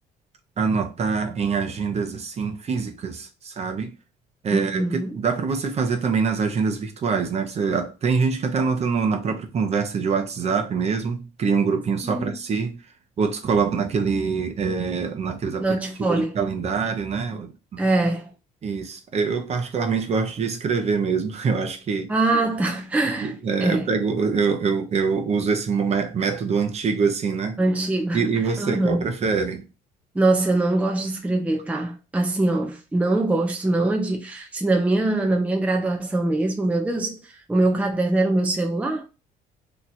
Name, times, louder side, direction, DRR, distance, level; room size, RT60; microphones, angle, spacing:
voice 1, 0.6-3.9 4.4-12.8 13.2-17.8 18.6-22.1 23.2-27.6 28.1-29.6, right 5 dB, 40° right, 0.8 m, -24 dB
voice 2, 4.5-5.2 12.1-12.3 15.6-16.3 17.8-18.3 22.1-23.3 23.6-23.9 27.6-29.0 30.1-39.1, right 2 dB, 10° right, 0.6 m, -23 dB
3.0 x 2.4 x 4.1 m
cardioid pair, 110°, 17 cm